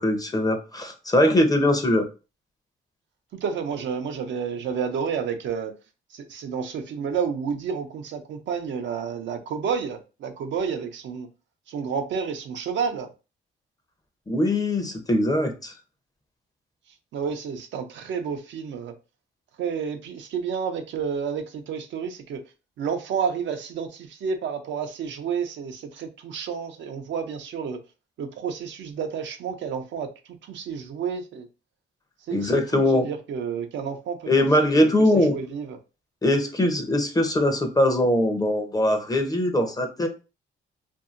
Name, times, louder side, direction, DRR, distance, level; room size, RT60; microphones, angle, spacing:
voice 1, 0.0-2.1 14.3-15.7 32.3-33.1 34.3-35.4 36.2-40.1, left 1 dB, 20° left, 0.6 m, -21 dB
voice 2, 3.4-5.7 6.1-11.3 11.7-13.1 17.1-18.9 19.6-22.4 22.8-27.8 28.2-30.1 30.4-31.5 32.3-34.5 34.7-35.8, right 6 dB, 70° right, 0.6 m, -30 dB
2.7 x 2.6 x 2.5 m
cardioid pair, 90°, 20 cm